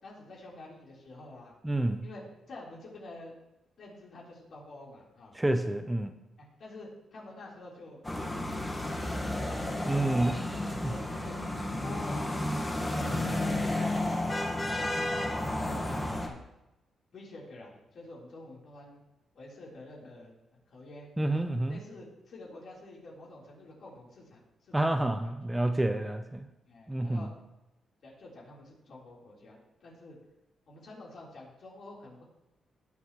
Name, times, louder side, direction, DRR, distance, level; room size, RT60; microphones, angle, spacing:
voice 1, 0.0-1.5 2.0-3.4 3.8-5.4 6.4-9.3 10.3-11.5 11.8-12.4 12.8-14.2 14.7-15.9 16.2-16.4 17.1-19.0 19.4-25.2 26.0-26.2 26.7-27.3 28.0-30.2 30.7-32.2, left 2 dB, 60° left, -4 dB, 3.8 m, -48 dB
voice 2, 1.6-2.1 5.3-6.2 9.9-10.9 21.2-21.8 24.7-26.5 26.9-27.3, right 1 dB, 10° right, 8 dB, 0.6 m, -29 dB
sound 1, 8.0-16.3, left 1 dB, 15° left, 1.5 m, -32 dB
19.0 x 7.2 x 3.1 m, 0.94 s
cardioid pair, 115°, 0 cm